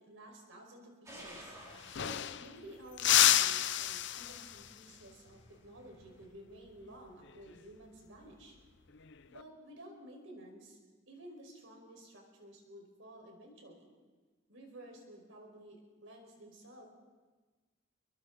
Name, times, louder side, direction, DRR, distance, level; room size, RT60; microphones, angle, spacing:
voice 1, 0.0-1.5 1.8-8.6 9.3-10.8 11.1-13.9 14.5-15.8 16.0-16.8, right 1 dB, 80° right, 2 dB, 5.1 m, -53 dB
sound 1, 1.1-6.3, equal, 15° right, 4.5 m, -56 dB
sound 2, 1.4-1.5 1.7-2.6 3.0-4.7 7.2-7.5 8.9-9.4, left 12 dB, 65° left, 0.7 m, -29 dB
29.5 x 23.0 x 4.0 m, 1.3 s
head